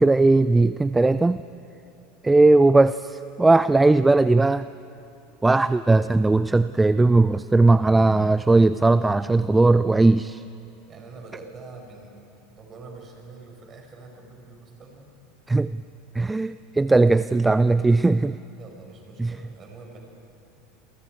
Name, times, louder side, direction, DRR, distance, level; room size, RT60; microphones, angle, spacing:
voice 1, 0.0-1.4 2.2-4.7 5.4-10.4 15.5-15.8 16.1-18.4 19.2-19.3, right 2 dB, 10° right, 15 dB, 0.4 m, -18 dB
voice 2, 10.9-12.2 12.5-15.1 18.5-20.0, right 3 dB, 35° right, 2 dB, 5.5 m, -44 dB
28.5 x 23.0 x 4.9 m, 2.8 s
hypercardioid pair, 85°, 0 cm